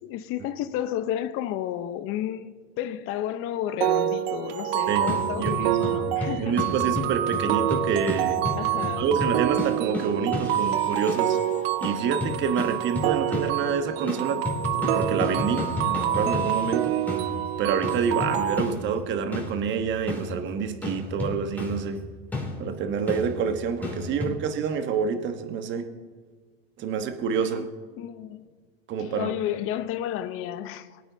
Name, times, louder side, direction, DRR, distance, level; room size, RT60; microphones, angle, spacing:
voice 1, 0.0-6.6 8.6-9.2 24.1-24.4 27.4-27.7 28.0-28.5 29.0-31.0, left 11 dB, 45° left, 0.9 m, -32 dB
sound 1, 3.8-18.6, right 11 dB, 70° right, 0.8 m, -27 dB
sound 2, 5.1-11.4 11.8-13.8 14.1-24.3, left 2 dB, 5° left, 2.8 m, -33 dB
voice 2, 5.4-5.9 6.4-8.4 9.0-11.4 11.8-14.4 14.7-17.0 17.6-22.0 22.6-25.9 26.8-27.6 28.9-29.3, right 6 dB, 35° right, 1.3 m, -27 dB
22.5 x 9.1 x 2.8 m
hypercardioid pair, 115°, 32 cm